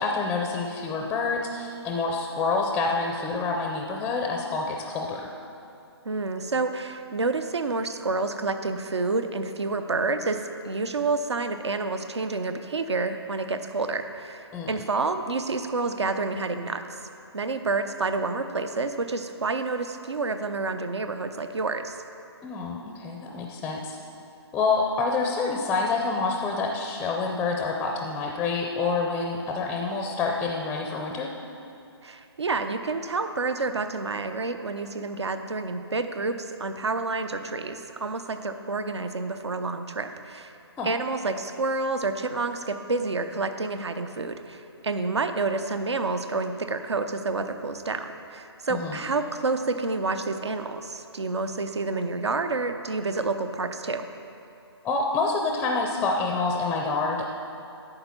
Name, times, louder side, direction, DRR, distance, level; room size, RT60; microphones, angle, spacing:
voice 1, 0.0-5.3 14.5-14.8 22.4-24.0 24.5-31.3 40.8-40.9 48.7-49.0 54.8-57.3, left 4 dB, 10° left, 2 dB, 0.4 m, -27 dB
voice 2, 6.0-16.8 17.3-21.9 32.0-40.5 40.8-54.1, right 3 dB, 80° right, 8 dB, 0.7 m, -29 dB
11.5 x 7.9 x 4.4 m, 2.7 s
figure-of-eight pair, 140°, 14 cm